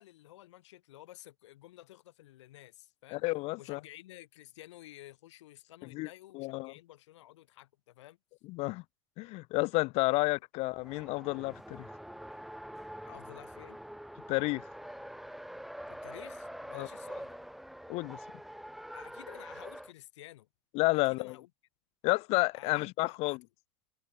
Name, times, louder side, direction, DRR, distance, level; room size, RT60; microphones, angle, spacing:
voice 1, 0.0-3.2 3.6-8.2 10.1-10.4 13.0-13.8 15.9-17.4 18.9-20.5 21.0-21.5 22.5-23.4, left 15 dB, 75° left, 2.5 m, -52 dB
voice 2, 3.1-3.8 5.9-6.1 6.3-6.7 8.5-8.8 9.2-11.8 14.3-14.6 16.7-16.9 17.9-18.2 20.7-21.3 22.0-23.4, left 23 dB, 45° left, 0.4 m, -30 dB
Race car auto racing, 10.7-19.9, equal, ahead, 0.8 m, -45 dB
hypercardioid pair, 100°, 15 cm